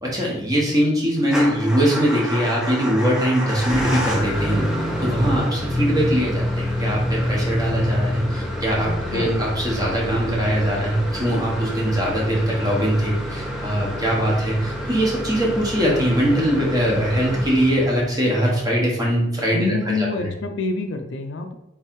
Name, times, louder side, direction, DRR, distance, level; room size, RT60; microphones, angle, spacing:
voice 1, 0.0-4.7 5.0-19.7 20.0-20.3, equal, 20° right, -3 dB, 1.0 m, -21 dB
Motor vehicle (road) / Engine starting / Idling, 1.2-18.2, equal, 5° right, 0.6 m, -27 dB
voice 2, 8.9-9.5 19.5-21.5, left 3 dB, 60° left, 6 dB, 0.4 m, -27 dB
3.6 x 3.1 x 4.4 m, 0.85 s
head